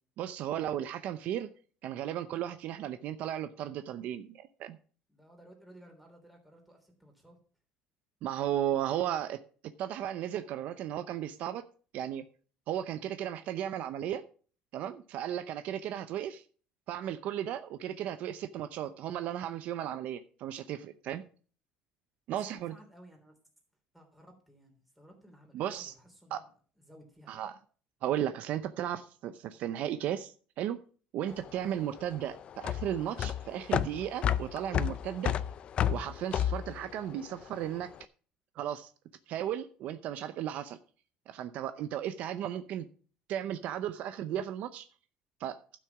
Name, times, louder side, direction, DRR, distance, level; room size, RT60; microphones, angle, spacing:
voice 1, 0.2-1.5 1.8-4.8 8.2-9.4 9.8-11.6 11.9-12.2 12.7-14.2 14.7-16.4 16.9-21.2 22.3-22.7 25.5-25.9 26.3-26.4 27.3-27.5 28.0-30.8 31.1-35.3 35.9-37.9 38.6-38.9 39.3-40.8 41.3-42.9 43.3-44.9 45.4-45.6, right 11 dB, 60° right, 11 dB, 0.6 m, -35 dB
voice 2, 5.1-7.4 22.4-23.4 23.9-26.5 26.8-27.4, right 1 dB, 5° right, 2 dB, 3.3 m, -56 dB
sound 1, 31.3-37.8, left 10 dB, 40° left, 0.5 m, -32 dB
11.5 x 6.3 x 5.8 m, 0.42 s
cardioid pair, 140°, 3 cm